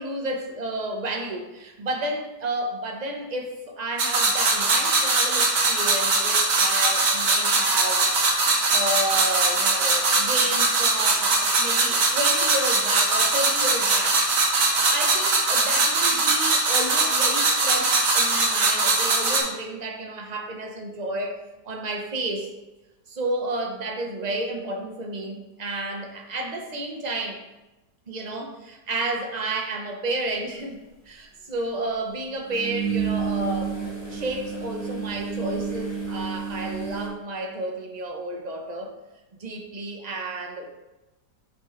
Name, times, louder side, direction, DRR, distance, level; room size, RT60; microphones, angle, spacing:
voice 1, 0.0-8.1 8.7-14.2 14.8-21.4 21.6-22.5 23.1-27.4 28.1-30.8 31.1-33.7 34.1-38.9 39.4-40.7, right 2 dB, 35° right, 2 dB, 0.7 m, -31 dB
sound 1, 4.0-19.4, right 3 dB, 75° right, 1.9 m, -21 dB
sound 2, 30.5-30.6 32.4-37.1, right 6 dB, 15° right, 1.9 m, -30 dB
7.7 x 5.3 x 3.2 m, 1.1 s
omnidirectional pair, 1.8 m